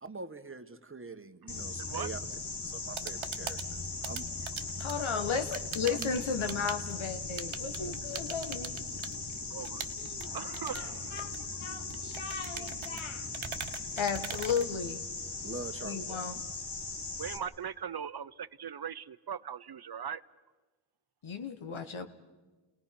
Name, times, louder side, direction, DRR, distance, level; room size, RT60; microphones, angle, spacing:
voice 1, 0.0-2.2 2.6-4.2 5.8-6.1 15.4-16.2, right 3 dB, 25° right, 1.4 m, -44 dB
sound 1, 1.5-17.4, left 3 dB, 55° left, 2.0 m, -39 dB
voice 2, 1.8-2.1 6.4-6.5 9.5-9.9 10.2-11.6 17.2-20.2, right 8 dB, 55° right, 0.7 m, -40 dB
sound 2, 2.7-15.3, right 8 dB, 80° right, 1.1 m, -44 dB
voice 3, 4.8-8.8 10.0-10.3 10.7-10.9 11.1-11.3 11.6-13.3 14.0-15.0 15.8-16.4 21.2-22.1, left 6 dB, 85° left, 1.6 m, -35 dB
29.5 x 19.5 x 5.9 m
cardioid pair, 55°, 47 cm